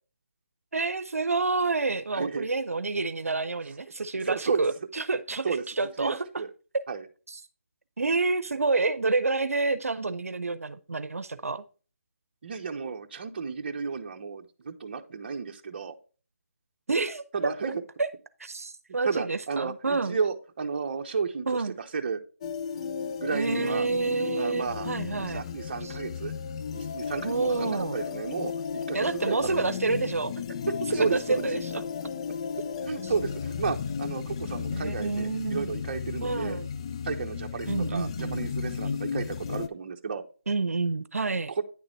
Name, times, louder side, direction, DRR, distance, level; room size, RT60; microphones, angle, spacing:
voice 1, 0.7-6.3 7.3-7.4 8.0-11.6 16.9-17.2 18.0-18.1 18.4-20.2 21.5-21.7 23.3-25.4 25.8-26.0 27.2-28.0 28.9-31.8 33.0-33.1 34.7-35.7 36.2-36.7 37.7-38.4 40.5-41.5, right 3 dB, 90° right, 0.7 m, -29 dB
voice 2, 2.1-2.5 4.2-4.6 5.4-5.6 6.0-6.5 6.9-7.0 12.4-15.9 17.3-17.8 19.0-22.2 23.2-23.9 24.3-24.9 25.1-26.3 26.7-29.4 30.9-31.5 32.8-36.6 37.0-40.2 41.6-41.7, right 5 dB, 45° right, 1.0 m, -32 dB
sound 1, 22.4-39.7, left 6 dB, 25° left, 0.4 m, -34 dB
9.8 x 3.9 x 4.4 m
figure-of-eight pair, 160°, 8 cm